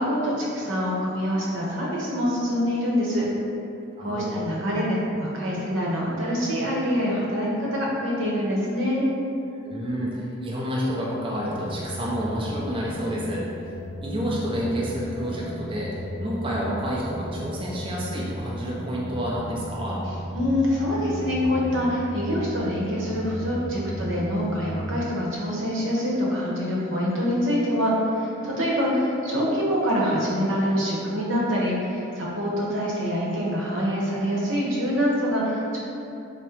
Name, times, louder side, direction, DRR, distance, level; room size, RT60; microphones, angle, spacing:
voice 1, 0.0-3.2 4.0-9.1 20.3-35.8, equal, 85° right, -5 dB, 0.9 m, -25 dB
voice 2, 4.0-4.4 9.6-13.8 14.0-20.0, equal, 25° right, -5 dB, 0.5 m, -29 dB
sound 1, 11.4-24.8, equal, 30° left, 0.5 m, -35 dB
3.6 x 2.1 x 4.3 m, 2.7 s
head